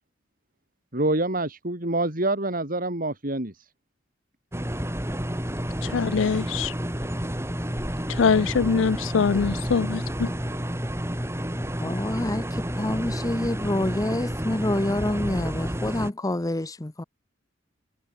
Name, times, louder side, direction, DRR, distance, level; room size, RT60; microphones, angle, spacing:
voice 1, 0.9-3.5, right 2 dB, 45° right, 4.2 m, -26 dB
sound 1, 4.5-16.1, equal, 15° right, 4.9 m, -30 dB
voice 2, 5.8-6.7 8.1-10.3, left 5 dB, 70° left, 0.5 m, -23 dB
voice 3, 11.8-17.0, left 1 dB, 20° left, 0.7 m, -27 dB
head